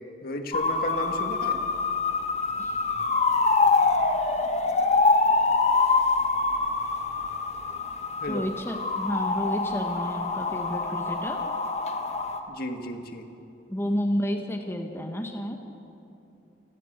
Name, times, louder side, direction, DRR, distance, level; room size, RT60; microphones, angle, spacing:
voice 1, 0.2-1.6 8.2-8.5 12.5-13.3, left 1 dB, 55° left, 5 dB, 1.9 m, -33 dB
sound 1, 0.5-12.4, left 3 dB, 40° left, 1.5 m, -25 dB
voice 2, 8.3-11.4 13.7-15.6, equal, 15° left, 3 dB, 1.6 m, -30 dB
28.5 x 18.0 x 6.7 m, 2.8 s
head